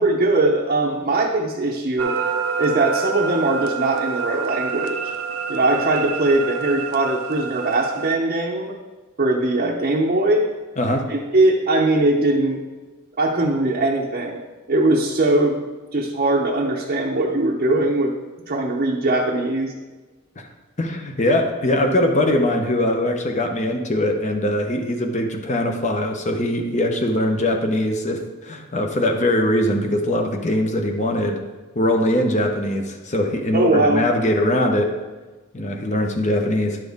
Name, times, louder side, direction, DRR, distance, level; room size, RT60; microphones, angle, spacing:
voice 1, 0.0-2.2 2.6-5.1 5.5-8.7 9.2-10.5 11.1-12.6 13.2-14.4 14.7-15.6 15.9-18.1 18.5-19.7 33.5-34.1, right 2 dB, 40° right, -2 dB, 0.7 m, -20 dB
sound 1, 2.0-8.1, right 6 dB, 75° right, 0.5 m, -27 dB
voice 2, 20.8-31.4 31.7-34.9 35.5-36.8, left 1 dB, 35° left, 4 dB, 0.9 m, -21 dB
11.5 x 6.1 x 3.6 m, 1.3 s
head